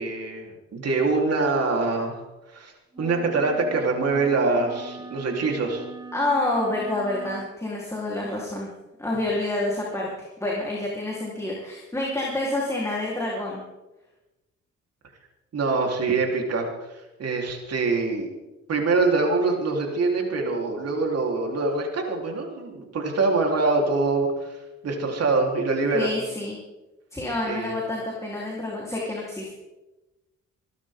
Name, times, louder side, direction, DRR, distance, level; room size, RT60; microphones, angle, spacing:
voice 1, 0.0-2.2 2.5-2.7 3.0-5.9 15.5-18.3 18.7-26.1 27.5-27.7, right 3 dB, 55° right, 1 dB, 4.1 m, -24 dB
sound 1, 2.9-7.6, right 4 dB, 15° right, 1.6 m, -40 dB
voice 2, 6.1-8.7 9.0-13.6 25.9-26.6 27.1-29.5, left 2 dB, 10° left, -4 dB, 4.1 m, -28 dB
25.5 x 12.0 x 3.9 m, 1.1 s
cardioid pair, 90°, 30 cm